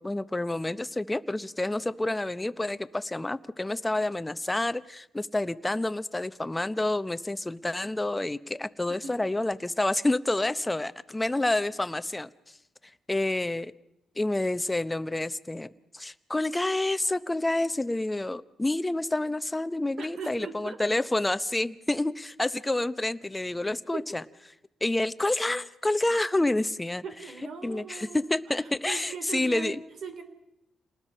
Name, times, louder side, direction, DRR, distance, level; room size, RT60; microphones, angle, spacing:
voice 1, 0.0-12.3 13.1-13.7 14.2-24.2 24.8-27.0 27.6-29.8, left 2 dB, 15° left, 13 dB, 0.8 m, -28 dB
voice 2, 20.0-20.8 23.9-24.0 27.0-28.2 28.8-29.8 30.0-30.2, right 6 dB, 65° right, 8 dB, 3.3 m, -39 dB
29.0 x 19.5 x 5.6 m, 0.87 s
cardioid pair, 95°, 0 cm